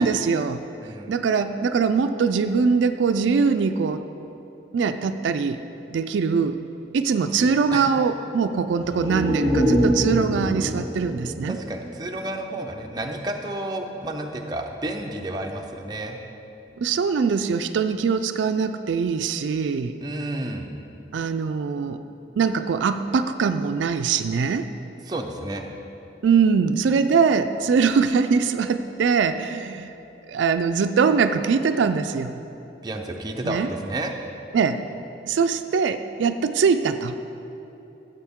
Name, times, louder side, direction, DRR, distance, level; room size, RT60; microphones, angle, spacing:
voice 1, 0.0-0.6 1.1-4.0 4.7-5.6 5.9-6.6 6.9-11.6 16.8-19.9 21.1-22.0 22.4-24.6 26.2-29.9 30.3-32.4 33.4-33.7 34.5-34.8 35.2-37.1, right 5 dB, 80° right, 9 dB, 0.3 m, -22 dB
voice 2, 0.8-1.1 7.4-7.9 11.5-16.2 20.0-20.7 25.1-25.7 32.8-34.1, right 1 dB, 20° right, 2 dB, 0.6 m, -31 dB
sound 1, 8.8-12.5 12.9-13.0, equal, 35° left, 2.5 m, -25 dB
13.5 x 7.8 x 3.6 m, 2.9 s
head